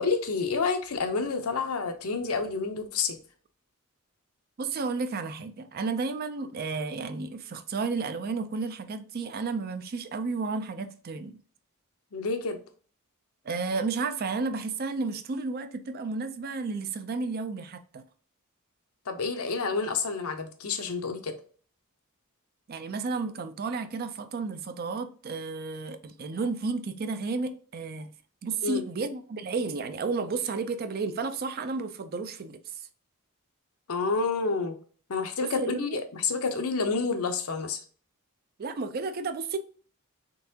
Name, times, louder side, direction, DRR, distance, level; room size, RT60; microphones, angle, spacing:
voice 1, 0.0-3.2 12.1-12.6 19.1-21.3 28.6-28.8 33.9-34.7 35.1-37.8, left 4 dB, 80° left, 0.7 m, -29 dB
voice 2, 4.6-11.4 13.4-18.0 22.7-28.1 28.4-32.6 35.6-36.0 38.6-39.6, right 4 dB, 45° right, 0.4 m, -32 dB
3.8 x 3.5 x 2.8 m
head